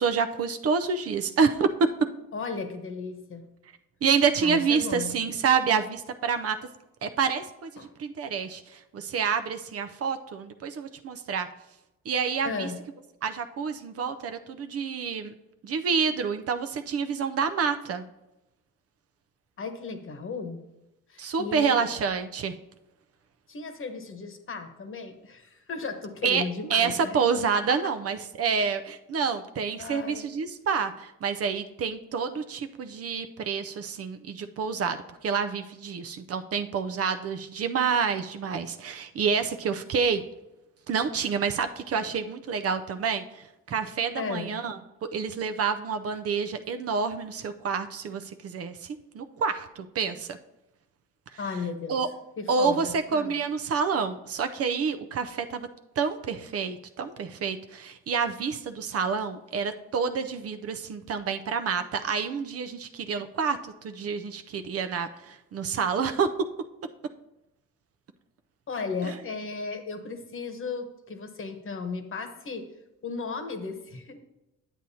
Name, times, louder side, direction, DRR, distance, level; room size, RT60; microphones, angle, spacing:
voice 1, 0.0-1.9 4.0-6.6 7.0-11.5 12.1-12.7 13.2-15.3 15.6-18.0 21.2-22.5 26.2-26.4 26.7-40.2 40.9-50.4 51.9-52.1 52.5-55.7 56.0-66.3 69.0-69.1, right 6 dB, 50° right, 9 dB, 0.5 m, -28 dB
voice 2, 2.3-3.5 4.4-5.2 7.8-7.9 12.4-12.8 19.6-20.6 21.1-21.9 23.5-27.2 27.5-27.9 29.8-30.3 44.1-44.5 51.4-52.0 52.4-53.3 68.7-72.6 73.0-74.2, left 4 dB, 45° left, 6 dB, 1.1 m, -35 dB
10.0 x 7.6 x 2.8 m, 0.95 s
cardioid pair, 90°, 30 cm